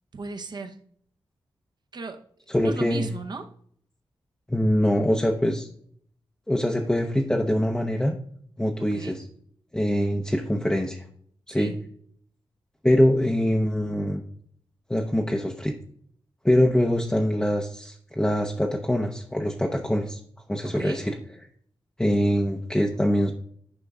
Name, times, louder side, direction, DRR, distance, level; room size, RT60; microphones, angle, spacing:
voice 1, 0.1-0.8 1.9-2.2 2.6-3.5 8.8-9.2 11.5-11.8 20.6-21.1, right 3 dB, 50° right, 0.7 m, -36 dB
voice 2, 2.5-3.1 4.5-5.7 6.5-8.2 8.6-9.2 9.7-11.0 11.5-11.7 12.8-14.2 14.9-15.7 16.4-20.2 20.5-21.1 22.0-23.3, equal, 10° left, 0.6 m, -23 dB
9.9 x 5.1 x 2.3 m
wide cardioid pair, 100°, 9 cm